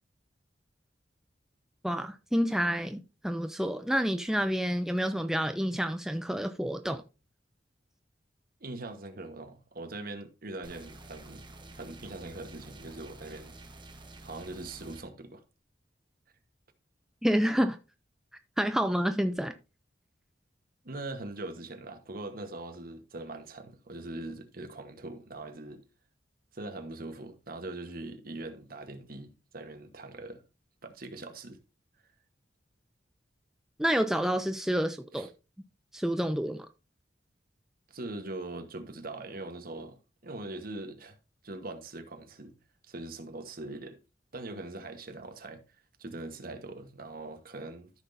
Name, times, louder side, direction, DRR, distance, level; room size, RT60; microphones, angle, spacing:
voice 1, 1.8-7.0 17.2-17.8 18.6-19.6 33.8-35.3 35.9-36.7, equal, 5° right, 0.4 m, -29 dB
voice 2, 8.6-11.5 11.8-13.5 14.2-15.4 20.8-25.8 26.5-30.4 30.8-31.6 35.1-35.3 37.9-41.2 41.4-42.5 42.9-44.0 44.3-45.6 46.0-47.9, right 2 dB, 55° right, 1.3 m, -41 dB
sound 1, 10.6-15.0, right 2 dB, 25° right, 1.2 m, -49 dB
13.5 x 6.0 x 2.7 m
head